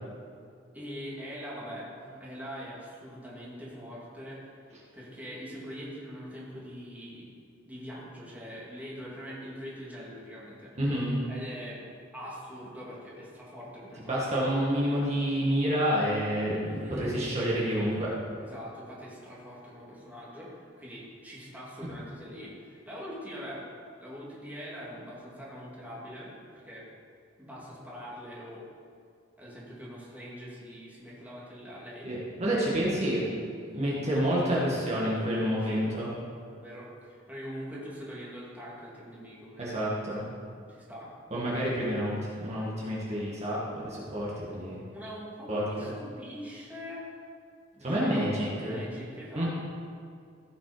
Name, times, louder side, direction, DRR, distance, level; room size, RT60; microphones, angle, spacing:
voice 1, 0.7-4.5 4.9-7.3 7.7-10.8 11.3-11.8 12.1-14.4 16.6-17.1 18.4-23.6 24.0-26.9 27.4-28.6 29.4-32.1 35.6-35.9 36.5-40.0 40.7-41.1 44.9-47.0 47.7-49.5, equal, 10° right, -6 dB, 2.4 m, -43 dB
voice 2, 10.8-11.2 14.1-18.1 32.0-33.2 33.7-36.1 39.6-40.3 41.3-44.8 45.5-45.6 47.8-48.8 49.3-49.5, equal, 35° right, -6 dB, 2.0 m, -28 dB
15.5 x 5.8 x 5.1 m, 2.4 s
head